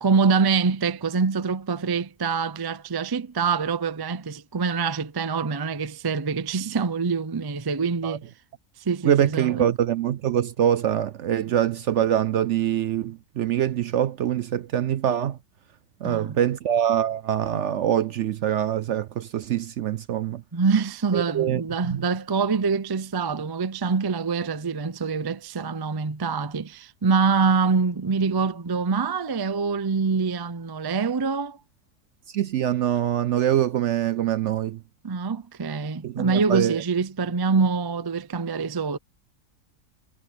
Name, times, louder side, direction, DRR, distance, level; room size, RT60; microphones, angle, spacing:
voice 1, 0.0-8.2 8.9-9.6 16.0-16.4 20.5-31.6 35.0-39.0, right 5 dB, 40° right, 0.3 m, -25 dB
voice 2, 9.0-15.4 16.0-20.4 21.1-21.6 21.9-22.0 32.3-34.8 36.0-36.8, right 10 dB, 65° right, 0.7 m, -24 dB
omnidirectional pair, 1.7 m